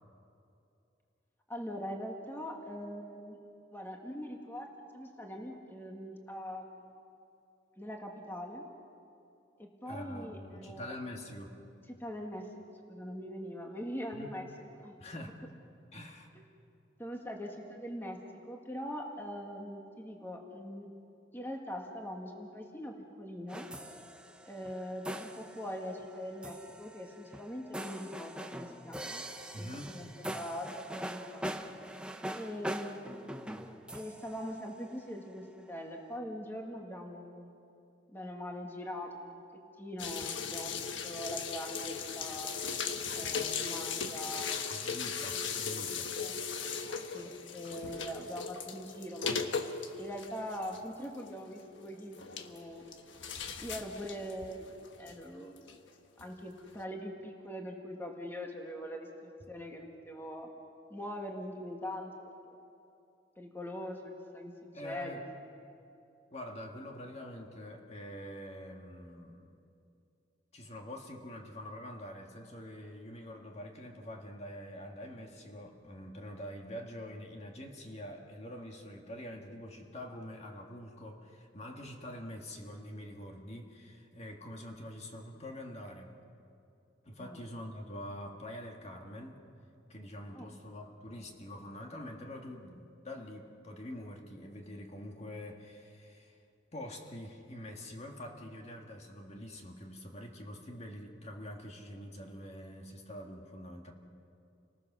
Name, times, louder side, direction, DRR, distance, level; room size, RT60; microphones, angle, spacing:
voice 1, 1.5-3.4 3.7-6.9 7.8-8.7 9.6-10.9 11.9-14.4 14.8-15.0 17.0-18.2 18.5-20.9 21.3-23.7 24.4-29.2 29.5-31.5 32.3-33.1 33.9-37.5 38.1-39.4 39.8-42.6 43.1-44.6 46.2-46.3 47.1-49.3 50.0-52.9 53.6-54.7 55.0-55.7 56.2-60.5 60.9-62.6 63.4-65.2 87.2-87.4 90.3-90.5, equal, 10° left, 1 dB, 1.7 m, -42 dB
voice 2, 9.9-11.5 14.1-14.3 15.0-15.4 15.9-16.3 29.5-30.0 44.7-46.1 64.7-65.2 66.3-69.5 70.5-86.1 87.0-89.4 89.9-96.4 96.7-103.9, left 1 dB, 35° left, 2 dB, 1.8 m, -45 dB
sound 1, 23.5-35.3, right 1 dB, 5° right, 0.8 m, -43 dB
sound 2, 40.0-55.7 56.2-56.3 56.7-56.8, left 6 dB, 90° left, 1.3 m, -38 dB
30.0 x 20.0 x 6.2 m, 2.7 s
head